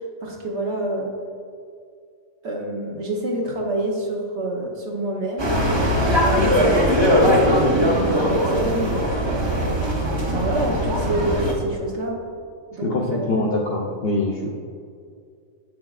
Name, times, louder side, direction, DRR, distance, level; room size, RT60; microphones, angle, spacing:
voice 1, 0.2-1.1 2.4-5.5 6.2-9.6 10.3-12.2 12.7-13.3, right 1 dB, 55° right, -1 dB, 1.0 m, -27 dB
sound 1, 5.4-11.5, equal, 30° right, 0.5 m, -20 dB
voice 2, 12.8-14.5, left 2 dB, 60° left, -1 dB, 0.6 m, -24 dB
7.3 x 6.1 x 2.4 m, 2.3 s
omnidirectional pair, 1.6 m